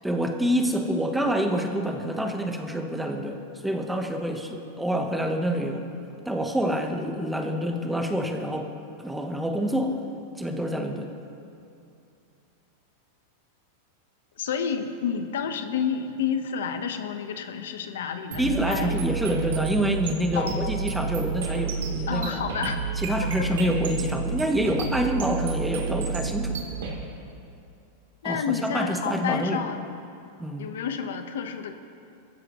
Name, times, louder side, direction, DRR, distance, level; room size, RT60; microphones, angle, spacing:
voice 1, 0.0-5.9 6.2-8.7 9.0-10.0 10.4-11.1 18.4-22.4 23.0-26.6 28.2-29.6 30.4-30.7, equal, 5° right, 3 dB, 1.1 m, -27 dB
voice 2, 14.4-19.0 20.3-20.7 22.1-22.8 23.2-23.5 28.2-29.9 30.6-31.8, left 7 dB, 90° left, 7 dB, 1.1 m, -30 dB
sound 1, 18.3-26.9, right 5 dB, 90° right, 3.3 m, -30 dB
23.0 x 15.0 x 3.1 m, 2.6 s
supercardioid pair, 150°, 0 cm